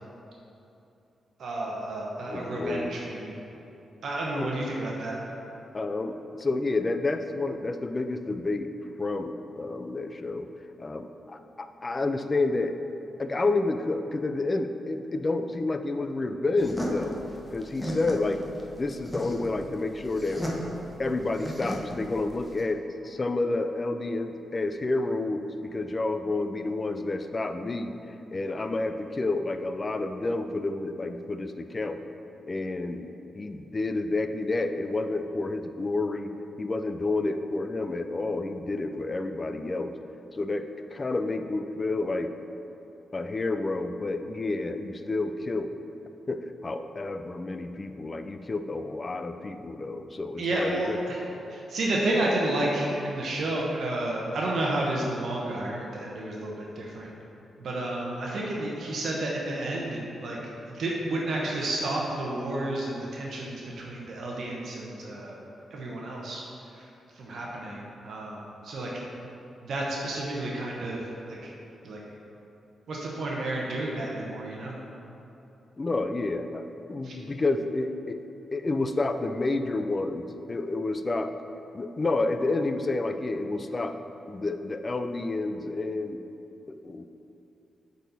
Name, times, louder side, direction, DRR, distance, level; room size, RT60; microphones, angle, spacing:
voice 1, 1.4-3.3 4.0-5.2 50.4-51.2 51.5-57.1 57.6-60.4 60.7-65.3 65.7-66.4 67.2-69.1 69.6-71.0 71.3-71.5 71.8-72.0 72.9-74.7 77.0-77.1, right 1 dB, 70° right, -3 dB, 0.9 m, -31 dB
voice 2, 2.3-2.9 3.2-3.4 4.3-4.5 5.7-8.7 9.0-10.5 10.8-12.8 13.2-17.2 17.5-18.4 18.8-20.5 21.0-32.0 32.5-36.3 36.6-39.9 40.3-42.3 43.1-45.7 46.3-51.0 51.5-51.6 75.8-76.6 76.9-78.2 78.5-81.3 81.7-84.0 84.3-86.2 86.7-87.0, left 2 dB, 30° left, 8 dB, 0.4 m, -30 dB
sound 1, 16.6-22.6, equal, 5° left, 1.0 m, -35 dB
8.2 x 4.1 x 4.1 m, 2.9 s
cardioid pair, 100°, 0 cm